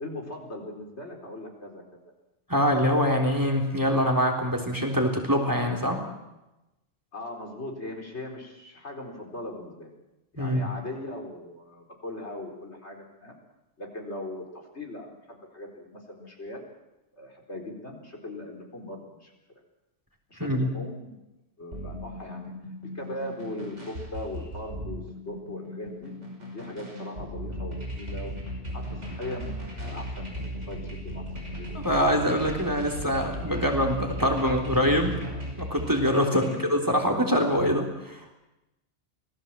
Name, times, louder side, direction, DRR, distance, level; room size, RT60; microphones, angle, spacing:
voice 1, 0.0-1.8 7.1-9.9 10.3-13.3 13.8-14.4 14.7-16.6 17.1-19.3 20.3-21.2 21.6-22.5 22.8-26.1 26.5-28.3 28.7-31.7 33.5-33.8 36.2-36.6, left 1 dB, 70° left, 0 dB, 4.7 m, -39 dB
voice 2, 2.5-6.0 10.4-10.6 20.4-20.7 31.7-35.1 35.6-38.3, equal, 15° right, 3 dB, 3.5 m, -24 dB
sound 1, 21.7-36.7, equal, 90° right, 5.9 m, -37 dB
26.5 x 18.5 x 7.6 m, 0.97 s
omnidirectional pair, 1.2 m